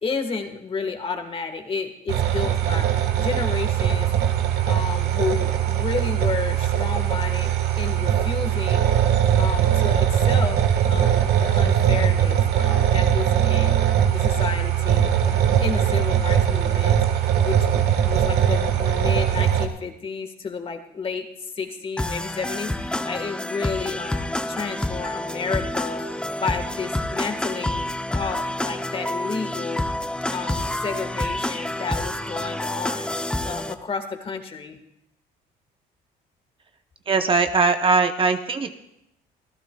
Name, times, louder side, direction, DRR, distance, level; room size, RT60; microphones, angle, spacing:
voice 1, 0.0-2.9 3.2-4.1 4.6-8.9 9.3-13.8 14.1-17.0 17.4-26.1 26.4-29.8 30.3-33.2 33.4-34.8, left 5 dB, 35° left, 7 dB, 1.6 m, -31 dB
sound 1, 2.1-19.7, right 10 dB, 70° right, 1.5 m, -20 dB
sound 2, 22.0-33.7, left 1 dB, 5° left, 0.6 m, -28 dB
voice 2, 37.1-38.7, right 4 dB, 30° right, 7 dB, 0.8 m, -20 dB
25.5 x 15.0 x 2.3 m, 0.81 s
cardioid pair, 110°, 17 cm